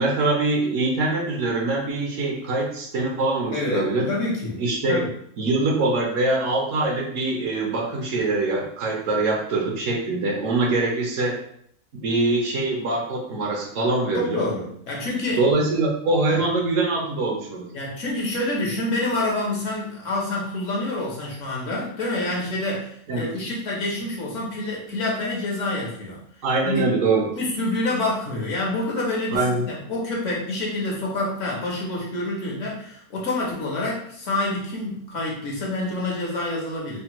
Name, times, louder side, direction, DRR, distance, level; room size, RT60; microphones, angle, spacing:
voice 1, 0.0-4.1 4.6-5.0 5.4-11.4 12.0-14.4 15.4-17.7 23.1-23.3 26.4-27.4 29.3-29.7, right 2 dB, 65° right, -1 dB, 0.9 m, -23 dB
voice 2, 3.5-4.6 4.9-5.1 14.1-15.4 16.3-16.4 17.7-26.2 26.6-26.8 27.3-29.4 29.7-37.0, left 2 dB, 60° left, -3 dB, 1.0 m, -27 dB
3.3 x 2.1 x 2.9 m, 0.68 s
omnidirectional pair, 1.6 m